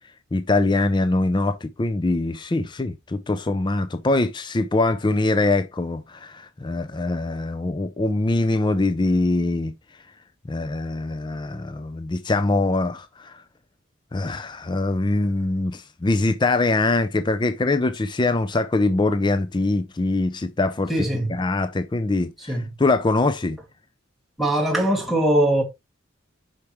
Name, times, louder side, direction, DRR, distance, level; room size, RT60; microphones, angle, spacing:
voice 1, 0.3-9.7 10.5-13.4 14.1-20.9 21.3-23.6, left 2 dB, 25° left, 0.4 m, -23 dB
voice 2, 20.9-21.3 22.5-22.7 24.4-25.6, right 1 dB, ahead, 1.8 m, -21 dB
6.9 x 5.8 x 3.0 m
head